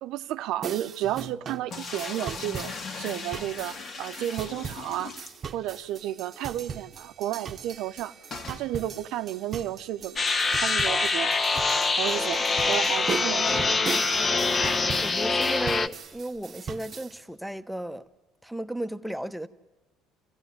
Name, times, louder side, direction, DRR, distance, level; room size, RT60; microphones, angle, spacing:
voice 1, 0.0-2.7 3.0-5.1 5.5-8.1 8.5-10.2 10.6-11.3 11.9-13.8, right 13 dB, 70° right, 0.7 m, -32 dB
sound 1, 0.6-17.2, right 6 dB, 45° right, 0.9 m, -39 dB
sound 2, 1.7-5.9 6.2-6.3 6.5-6.6 8.3-8.7, left 4 dB, 50° left, 2.2 m, -38 dB
sound 3, 10.2-15.9, left 3 dB, 35° left, 1.0 m, -24 dB
voice 2, 15.0-18.1 18.4-19.5, right 1 dB, ahead, 1.0 m, -34 dB
29.0 x 15.0 x 9.5 m
supercardioid pair, 75°, 0 cm